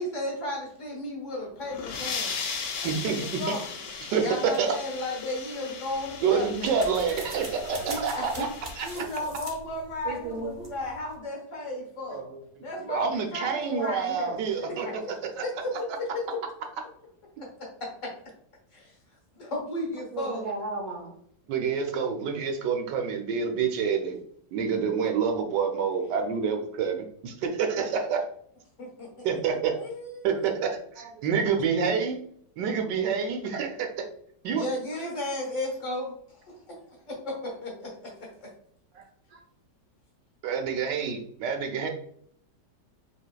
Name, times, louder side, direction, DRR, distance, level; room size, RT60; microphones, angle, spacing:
voice 1, 0.0-2.4 2.8-3.6 4.2-6.7 7.8-8.4 8.8-12.2 12.6-15.1 15.4-16.2 17.4-17.7 18.7-18.9 19.3-20.4 28.8-29.1 29.7-30.3 34.6-38.5, left 1 dB, 50° left, -1 dB, 1.4 m, -34 dB
sound 1, 1.5-9.0, left 5 dB, 75° left, 1.3 m, -37 dB
voice 2, 2.8-3.4 4.1-4.7 6.2-8.5 8.8-8.9 12.9-14.9 15.4-15.5 21.5-24.2 24.5-28.3 29.2-29.7 30.2-32.2 32.6-33.9 34.4-34.6 40.4-41.9, right 6 dB, 80° right, 4 dB, 1.3 m, -27 dB
sound 2, 5.8-11.2, right 2 dB, 40° right, 0.5 m, -44 dB
voice 3, 7.7-8.1 8.9-9.3 10.0-10.5 12.1-12.7 20.1-21.1 31.0-31.5 31.9-32.0 38.9-39.4, right 3 dB, 60° right, 0 dB, 1.2 m, -38 dB
5.1 x 3.0 x 2.2 m, 0.65 s
omnidirectional pair, 1.8 m